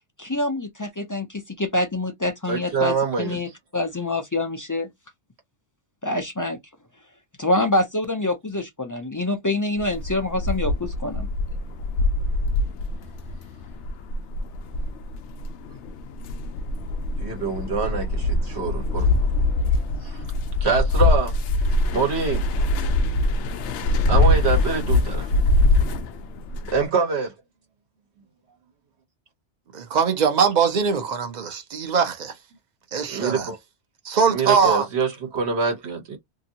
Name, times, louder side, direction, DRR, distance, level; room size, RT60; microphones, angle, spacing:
voice 1, 0.2-1.3 1.6-4.9 6.0-6.6 7.4-11.3, left 2 dB, 30° left, 0.3 m, -26 dB
voice 2, 2.5-3.4 17.2-19.1 20.0-20.2 20.6-21.3 21.9-22.4 24.1-25.3 26.6-27.3 33.1-33.6 34.3-36.2, right 5 dB, 70° right, 1.2 m, -25 dB
sound 1, 9.8-26.9, left 2 dB, 80° left, 0.9 m, -23 dB
voice 3, 29.7-32.3 32.9-33.5 34.0-34.9, right 6 dB, 45° right, 0.7 m, -22 dB
2.8 x 2.6 x 2.7 m
omnidirectional pair, 1.2 m